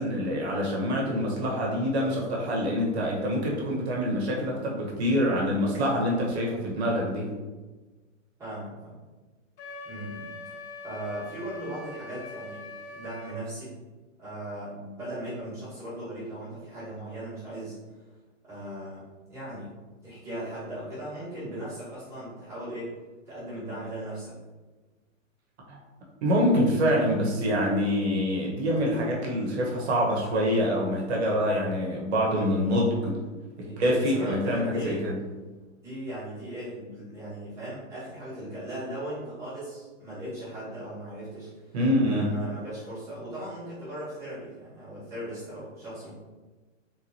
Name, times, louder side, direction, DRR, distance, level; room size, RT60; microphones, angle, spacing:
voice 1, 0.0-7.3 25.7-25.8 26.2-33.2 33.6-35.2 41.7-42.3, equal, 55° right, -2 dB, 1.2 m, -26 dB
voice 2, 8.4-8.9 9.8-10.3 10.8-12.6 12.9-13.7 14.2-17.7 18.4-19.0 19.3-19.7 20.0-22.9 23.2-24.3 33.6-35.0 35.8-41.8 42.0-46.1, right 1 dB, 5° right, -13 dB, 1.5 m, -38 dB
Wind instrument woodwind instrument, 9.6-13.4, left 3 dB, 60° left, 0.8 m, -42 dB
3.6 x 3.1 x 2.7 m, 1.2 s
hypercardioid pair, 165°, 39 cm